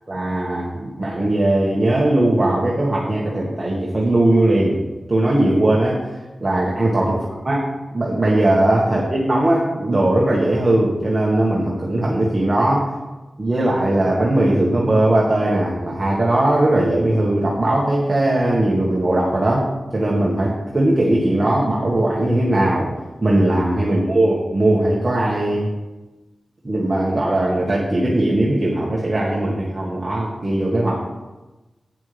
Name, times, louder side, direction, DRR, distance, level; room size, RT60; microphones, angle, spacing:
voice 1, 0.1-4.8 5.1-6.0 6.4-7.2 7.4-7.6 7.9-12.9 13.4-22.9 23.2-25.7 26.6-31.0, right 1 dB, 30° right, -4 dB, 1.8 m, -19 dB
12.0 x 8.8 x 3.5 m, 1.1 s
wide cardioid pair, 105°, 0 cm